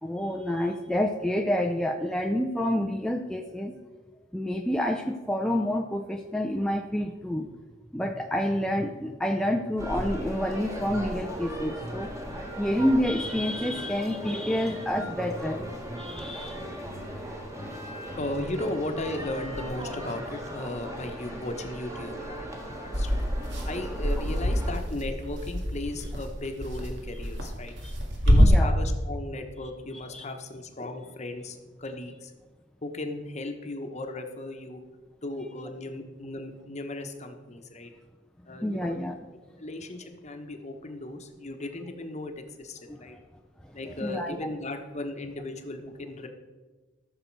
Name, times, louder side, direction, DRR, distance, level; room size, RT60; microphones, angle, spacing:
voice 1, 0.0-3.7 4.3-7.5 7.9-12.1 12.6-15.6 16.0-16.6 27.8-27.9 28.4-28.8 30.1-30.2 38.6-39.1 42.9-43.0 43.8-44.4, equal, 5° left, 2 dB, 0.5 m, -28 dB
sound 1, 9.8-24.7, equal, 15° right, 1.5 m, -37 dB
voice 2, 18.2-23.2 23.6-27.7 28.2-32.3 32.8-34.8 35.2-37.9 38.5-39.0 39.6-43.2 43.7-46.3, left 2 dB, 35° left, 6 dB, 1.0 m, -36 dB
sound 2, 22.9-28.5, equal, 70° right, 1.9 m, -25 dB
14.0 x 6.6 x 4.6 m, 1.3 s
head